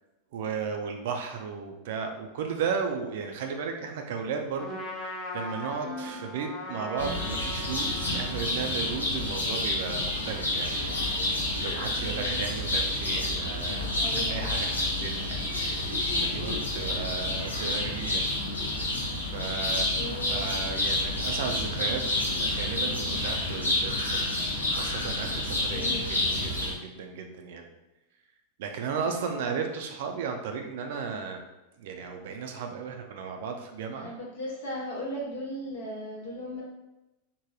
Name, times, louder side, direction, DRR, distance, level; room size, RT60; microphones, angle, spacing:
voice 1, 0.3-18.2 19.3-20.0 20.3-24.4 24.7-27.7 28.6-31.4 31.8-34.1, right 6 dB, 55° right, 4 dB, 0.3 m, -35 dB
Trumpet, 4.6-9.8, left 1 dB, 20° left, 0.5 m, -40 dB
voice 2, 5.8-6.2 11.7-12.4 14.0-14.6 19.9-20.5 25.7-26.1 29.0-29.5 34.0-36.6, equal, 55° left, -3 dB, 0.9 m, -37 dB
sound 1, 7.0-26.7, left 1 dB, 80° left, 0.6 m, -29 dB
3.2 x 2.1 x 2.5 m, 0.99 s
figure-of-eight pair, 90°, 0 cm